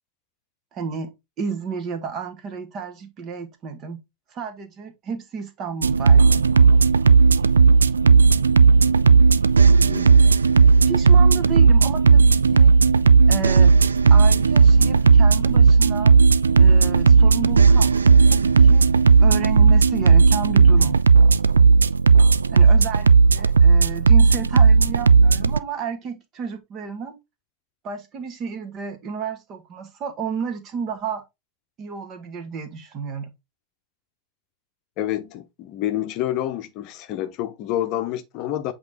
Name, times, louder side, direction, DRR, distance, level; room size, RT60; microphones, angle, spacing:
voice 1, 0.7-1.1 1.4-4.0 4.3-6.4 10.9-12.7 13.3-13.7 14.1-16.1 16.6-18.0 18.3-18.8 19.2-21.0 22.5-27.2 27.8-31.3 31.8-33.3, right 6 dB, 30° right, 1.6 m, -32 dB
sound 1, 5.8-25.6, right 5 dB, 75° right, 0.3 m, -14 dB
voice 2, 9.8-10.2 35.0-38.7, left 12 dB, 40° left, 0.9 m, -28 dB
8.0 x 3.8 x 3.4 m
figure-of-eight pair, 90°, 0 cm